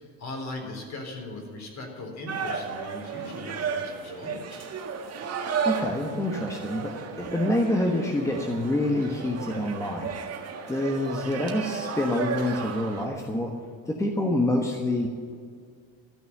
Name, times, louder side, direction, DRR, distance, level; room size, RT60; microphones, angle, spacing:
voice 1, 0.2-4.8, left 2 dB, 45° left, 2 dB, 3.9 m, -39 dB
sound 1, 2.3-13.1, right 6 dB, 40° right, 1.7 m, -34 dB
voice 2, 5.3-10.1 10.7-13.5 13.8-15.1, left 1 dB, 10° left, 2 dB, 1.3 m, -27 dB
14.0 x 6.1 x 9.8 m, 2.1 s
cardioid pair, 110°, 39 cm